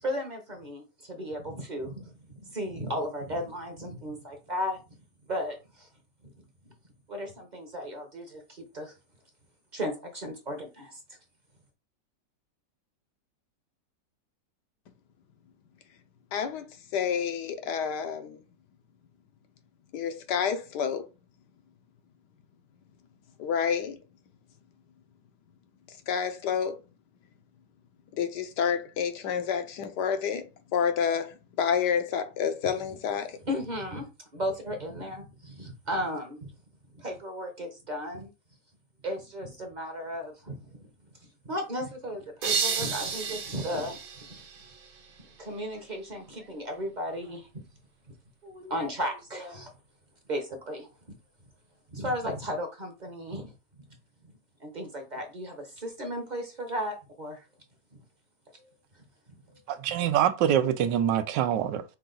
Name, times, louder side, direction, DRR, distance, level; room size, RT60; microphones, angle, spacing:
voice 1, 0.0-4.8 5.3-5.9 7.1-8.9 9.7-11.0 33.4-36.5 36.9-38.3 39.0-40.9 41.4-44.0 44.3-44.4 45.2-47.6 48.4-49.7 50.3-50.9 51.9-53.5 54.2-54.3 54.6-57.4 57.9-58.0 59.5-59.6, equal, 35° right, 0.8 m, -35 dB
voice 2, 16.3-16.7 16.9-18.4 19.9-21.0 23.4-24.0 26.1-26.7 28.2-30.4 30.7-33.3, left 7 dB, 75° left, 1.3 m, -29 dB
sound 1, 42.4-45.2, right 6 dB, 55° right, 1.3 m, -32 dB
voice 3, 59.7-61.8, right 10 dB, 85° right, 1.3 m, -25 dB
5.7 x 2.4 x 3.9 m
omnidirectional pair, 1.9 m